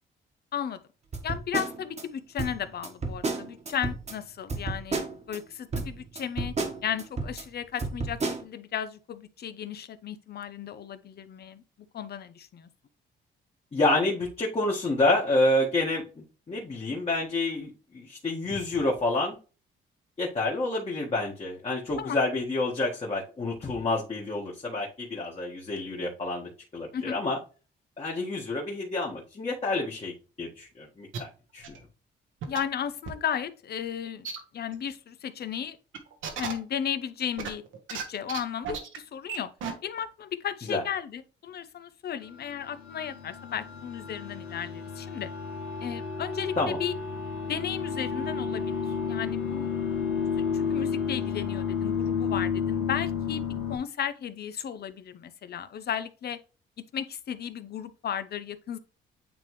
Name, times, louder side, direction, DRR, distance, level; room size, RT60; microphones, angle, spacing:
sound 1, 1.1-2.0 2.4-4.2 4.5-5.4 5.7-7.4 7.8-8.4, right 3 dB, 35° right, 1.3 m, -32 dB
voice 1, 1.2-6.6 6.8-12.7 22.0-22.2 26.9-27.2 32.5-34.3 34.5-35.8 36.4-37.6 37.9-39.5 39.8-45.3 45.8-46.9 47.4-49.7 50.5-53.4 53.7-56.4 56.9-58.8, left 8 dB, 55° left, 0.7 m, -34 dB
voice 2, 13.7-19.4 20.2-27.4 28.0-31.6 40.7-40.8 46.6-46.8, left 2 dB, 30° left, 1.6 m, -28 dB
sound 2, 31.1-31.2 31.6-31.8 32.4-32.6 33.1-33.2 34.2-34.4 34.7-34.8 35.9-36.5 37.4-38.0 38.3-38.4 38.6-39.0 39.3-39.4 39.6-39.7, right 7 dB, 80° right, 1.4 m, -34 dB
sound 3, 42.4-53.8, left 6 dB, 90° left, 1.5 m, -31 dB
8.9 x 3.5 x 3.1 m
cardioid pair, 90°, 20 cm